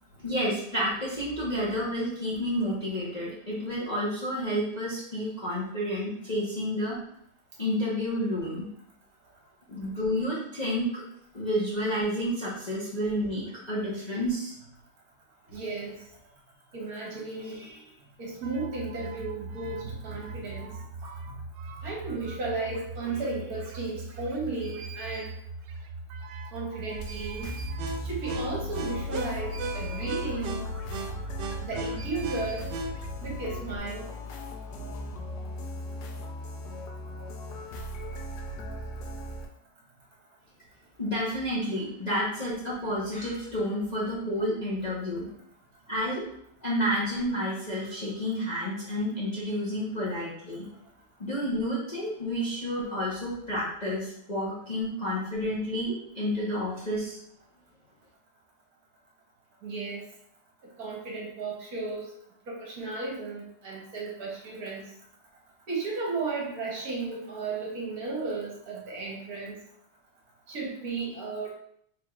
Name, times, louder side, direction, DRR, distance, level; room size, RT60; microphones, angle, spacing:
voice 1, 0.2-7.0 7.6-8.7 9.7-11.0 11.3-14.5 41.0-45.3 45.9-46.2 46.6-50.7 51.2-57.2, equal, 30° left, -8 dB, 0.8 m, -30 dB
voice 2, 15.5-16.0 16.7-17.8 18.2-20.7 21.0-21.4 21.8-25.3 26.5-27.7 28.0-30.6 31.6-32.7 33.2-34.1 44.8-45.0 59.6-60.1 60.8-62.1 62.5-64.9 65.7-69.6 70.5-71.5, right 3 dB, 60° right, -3 dB, 1.4 m, -34 dB
sound 1, 18.4-33.8, right 3 dB, 80° right, 1.2 m, -38 dB
sound 2, 26.9-39.5, left 2 dB, 75° left, 1.2 m, -38 dB
4.6 x 3.6 x 2.3 m, 0.70 s
omnidirectional pair, 1.9 m